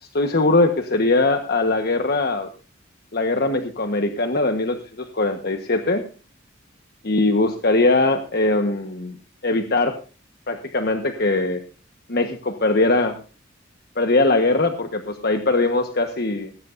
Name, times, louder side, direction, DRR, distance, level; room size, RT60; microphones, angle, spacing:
voice 1, 0.0-2.5 3.1-6.0 7.0-9.1 9.4-10.0 10.5-11.6 12.1-13.2 14.0-16.5, left 2 dB, 55° left, 6 dB, 1.3 m, -21 dB
18.0 x 16.0 x 2.6 m, 0.35 s
head